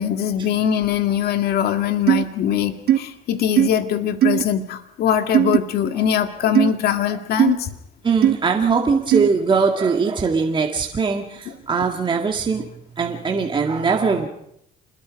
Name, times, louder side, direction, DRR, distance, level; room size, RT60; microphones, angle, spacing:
voice 1, 0.0-7.7 11.5-11.6, left 9 dB, 70° left, 7 dB, 2.1 m, -22 dB
sound 1, 2.1-2.2 2.9-3.0 3.6-3.7 4.2-4.4 5.3-5.6 6.6-6.7 7.4-7.5 8.2-8.3 9.1-9.3, right 11 dB, 70° right, 1.1 m, -16 dB
voice 2, 8.0-12.7 13.0-14.3, right 5 dB, 30° right, 2 dB, 2.1 m, -21 dB
27.0 x 21.0 x 5.3 m, 0.76 s
cardioid pair, 110°, 17 cm